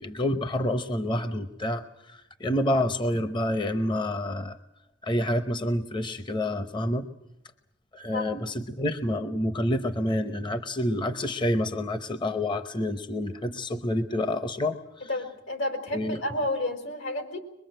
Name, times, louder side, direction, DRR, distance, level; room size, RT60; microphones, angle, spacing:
voice 1, 0.0-4.6 5.0-7.1 7.9-15.1 15.9-16.2, left 1 dB, 25° left, 10 dB, 0.8 m, -28 dB
voice 2, 8.1-8.4 15.1-17.4, left 1 dB, 80° left, 6 dB, 4.1 m, -31 dB
23.0 x 23.0 x 7.8 m, 0.81 s
head